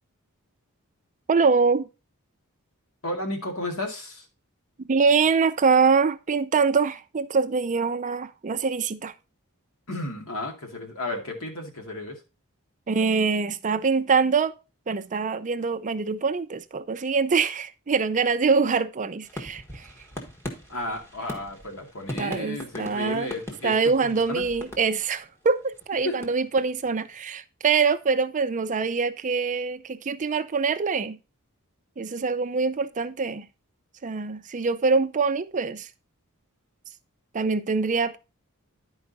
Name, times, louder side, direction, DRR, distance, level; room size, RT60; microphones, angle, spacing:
voice 1, 1.3-1.9 4.9-9.1 12.9-14.5 14.9-19.9 22.2-23.3 23.6-31.2 32.0-33.5 34.0-35.9 37.3-38.2, right 5 dB, 35° right, 0.5 m, -24 dB
voice 2, 3.0-4.2 9.9-12.2 20.7-23.7 24.0-24.4 26.0-26.2, left 1 dB, 70° left, 2.3 m, -33 dB
sound 1, 19.2-25.3 25.7-27.0, left 1 dB, 10° left, 1.5 m, -40 dB
10.5 x 4.8 x 4.0 m
head